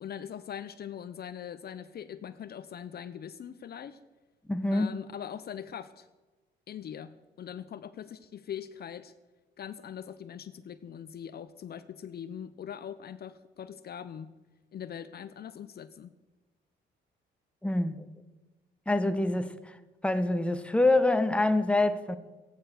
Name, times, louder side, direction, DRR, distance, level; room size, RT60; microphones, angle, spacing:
voice 1, 0.0-4.0 4.7-6.1 6.7-9.1 9.6-14.3 14.7-16.1, left 9 dB, 50° left, 0.7 m, -42 dB
voice 2, 4.5-5.0 17.6-18.1 18.9-19.8 20.0-22.2, left 2 dB, 5° left, 1.0 m, -26 dB
14.0 x 10.5 x 6.5 m
cardioid pair, 90°, 20 cm